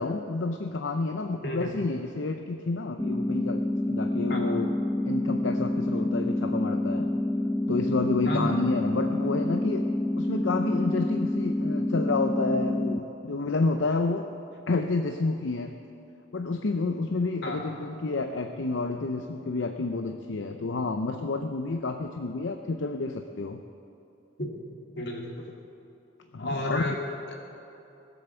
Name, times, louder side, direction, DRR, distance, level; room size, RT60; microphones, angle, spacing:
voice 1, 0.0-4.7 5.0-7.1 7.7-9.9 10.2-14.3 14.7-15.8 16.3-23.6 26.3-26.9, left 3 dB, 75° left, 6 dB, 0.6 m, -29 dB
voice 2, 1.4-1.7 4.3-4.4 8.3-8.5 17.4-17.6 24.4-24.5 25.0-25.5 26.4-27.0 27.3-27.4, left 1 dB, 60° left, 0 dB, 2.2 m, -31 dB
sound 1, 3.0-13.0, left 1 dB, 10° left, 0.4 m, -28 dB
18.0 x 7.9 x 7.0 m, 2.8 s
head